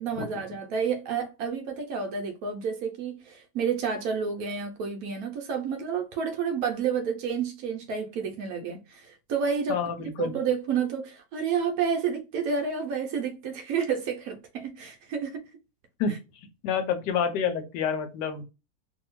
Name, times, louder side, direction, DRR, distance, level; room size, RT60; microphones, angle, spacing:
voice 1, 0.0-15.4 16.1-16.2, right 6 dB, 70° right, 1.0 m, -30 dB
voice 2, 9.7-10.3 16.0-16.2 16.6-18.4, left 6 dB, 85° left, 1.2 m, -28 dB
2.7 x 2.7 x 2.9 m
omnidirectional pair, 1.8 m